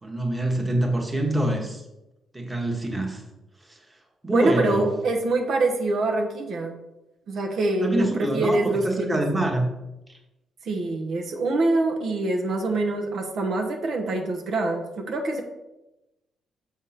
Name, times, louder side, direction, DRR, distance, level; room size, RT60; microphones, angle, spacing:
voice 1, 0.0-1.8 2.3-3.2 3.7-3.8 4.2-4.9 7.8-9.7, right 1 dB, 15° right, 1 dB, 1.3 m, -25 dB
voice 2, 4.3-6.8 7.3-9.2 10.6-15.4, right 2 dB, 65° right, 3 dB, 1.0 m, -25 dB
6.6 x 3.6 x 5.8 m, 0.97 s
cardioid pair, 90°, 0 cm